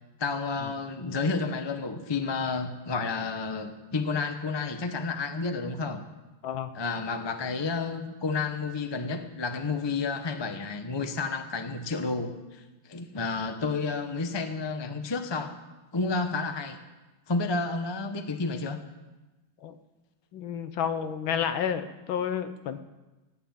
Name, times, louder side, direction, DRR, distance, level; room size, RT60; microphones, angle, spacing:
voice 1, 0.2-6.0 6.7-15.6 15.9-16.8 17.3-18.8, left 4 dB, 25° left, 7 dB, 0.6 m, -31 dB
voice 2, 20.3-22.8, left 8 dB, 70° left, 10 dB, 1.6 m, -30 dB
16.0 x 9.7 x 8.8 m, 1.1 s
omnidirectional pair, 2.4 m